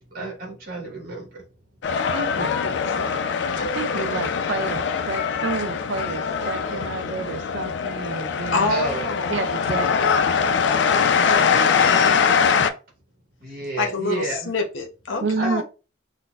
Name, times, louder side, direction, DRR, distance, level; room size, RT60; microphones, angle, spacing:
voice 1, 0.1-1.4 2.3-3.2 8.7-9.2 11.5-12.2 13.4-14.5 15.4-15.6, right 2 dB, 50° right, 1.1 m, -32 dB
sound 1, 1.8-12.7, left 6 dB, 65° left, 0.3 m, -22 dB
voice 2, 2.1-2.5 3.6-8.7 9.3-10.2 15.2-15.6, right 4 dB, 65° right, 0.3 m, -30 dB
voice 3, 8.5-9.4 10.8-11.6 13.8-15.6, left 3 dB, 90° left, 0.7 m, -27 dB
3.9 x 2.1 x 2.3 m
head